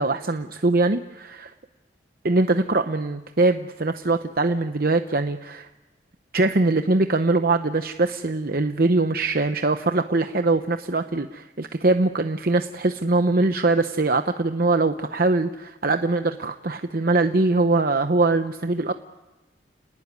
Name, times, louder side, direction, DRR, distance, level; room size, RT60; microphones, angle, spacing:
voice 1, 0.0-1.5 2.2-5.7 6.3-18.9, right 2 dB, 50° right, 8 dB, 0.8 m, -22 dB
30.0 x 19.5 x 9.6 m, 1.2 s
head